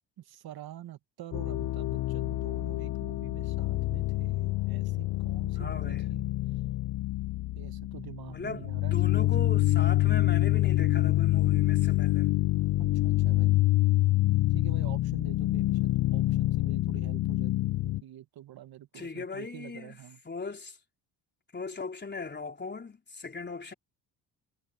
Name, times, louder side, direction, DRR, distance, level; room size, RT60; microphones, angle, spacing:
voice 1, 0.2-6.2 7.5-9.8 12.8-13.6 14.5-17.5 17.8-20.2, right 13 dB, 60° right, 1.7 m, -47 dB
sound 1, 1.3-18.0, left 17 dB, 50° left, 0.5 m, -26 dB
voice 2, 5.6-6.0 8.3-12.3 18.9-20.0 20.3-20.8 21.5-23.7, left 4 dB, 25° left, 4.0 m, -38 dB
supercardioid pair, 80°, 41 cm